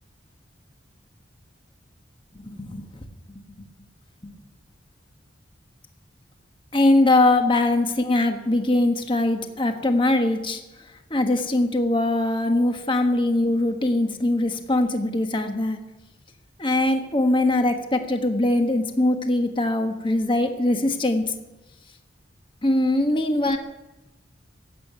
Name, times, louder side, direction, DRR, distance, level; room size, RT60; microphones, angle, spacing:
voice 1, 2.3-2.8 4.2-4.3 6.7-10.6 11.1-15.8 16.6-21.3 22.6-23.6, left 2 dB, 25° left, 5 dB, 1.3 m, -22 dB
15.0 x 8.6 x 9.4 m, 1.0 s
head